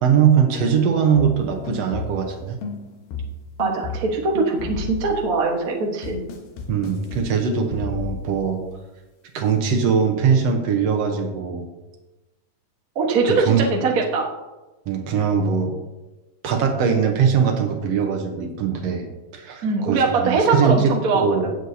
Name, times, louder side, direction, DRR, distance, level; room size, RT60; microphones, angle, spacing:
voice 1, 0.0-2.6 6.7-8.6 9.3-11.7 13.3-13.6 14.9-15.8 16.4-19.1 19.3-21.5, right 6 dB, 65° right, 4 dB, 1.7 m, -21 dB
sound 1, 1.1-2.4 2.6-5.5 6.0-7.3 7.7-8.5, left 4 dB, 80° left, 2.9 m, -33 dB
voice 2, 3.6-6.2 12.9-14.3 19.6-21.5, right 4 dB, 85° right, 1 dB, 0.7 m, -22 dB
16.0 x 7.8 x 2.7 m, 1.1 s
omnidirectional pair, 3.8 m